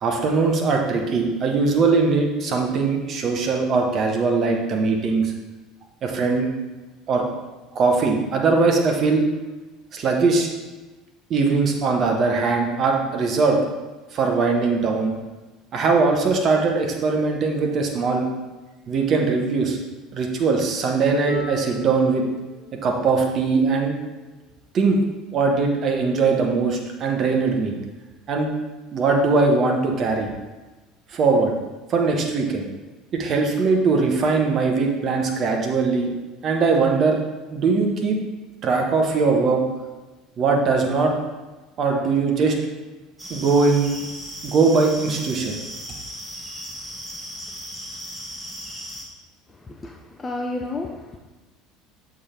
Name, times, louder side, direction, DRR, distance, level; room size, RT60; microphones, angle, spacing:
voice 1, 0.0-5.3 6.0-6.5 7.1-7.2 7.7-9.2 9.9-10.5 11.3-13.6 14.1-15.1 15.7-18.3 18.9-19.8 20.1-22.2 22.8-23.9 24.7-25.0 25.3-27.7 28.3-28.5 28.9-30.3 31.1-31.5 31.9-32.6 33.1-36.1 36.4-37.2 37.5-38.2 38.6-39.6 40.4-41.1 41.8-42.5 43.3-43.9 44.4-45.6, right 4 dB, 45° right, 1 dB, 1.0 m, -20 dB
Harp, 21.3-27.1 28.1-28.2, equal, 80° left, 1.0 m, -39 dB
sound 1, 43.2-49.0, equal, 10° right, 1.5 m, -36 dB
voice 2, 49.7-51.2, left 2 dB, 25° left, 2 dB, 0.6 m, -31 dB
6.6 x 3.8 x 4.4 m, 1.2 s
figure-of-eight pair, 65°, 0 cm